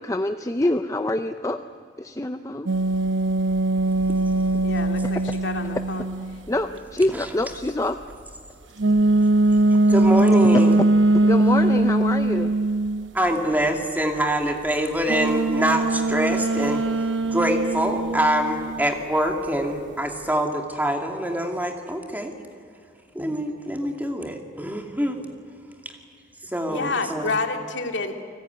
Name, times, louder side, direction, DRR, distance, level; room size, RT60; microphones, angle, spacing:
voice 1, 0.0-1.6 2.0-2.7 4.5-4.6 5.0-5.1 6.5-8.0 11.2-12.5, left 1 dB, 15° left, 8 dB, 0.6 m, -25 dB
sound 1, 2.7-6.5 8.8-13.1 15.1-18.9, right 2 dB, 85° right, 1.0 m, -21 dB
voice 2, 4.6-6.1 26.7-28.3, left 3 dB, 75° left, 4 dB, 2.7 m, -29 dB
voice 3, 9.9-10.8 13.1-22.3 23.1-25.2 25.8-25.9 26.4-27.3, right 1 dB, 10° right, 3 dB, 2.4 m, -25 dB
29.5 x 19.5 x 9.4 m, 2.2 s
head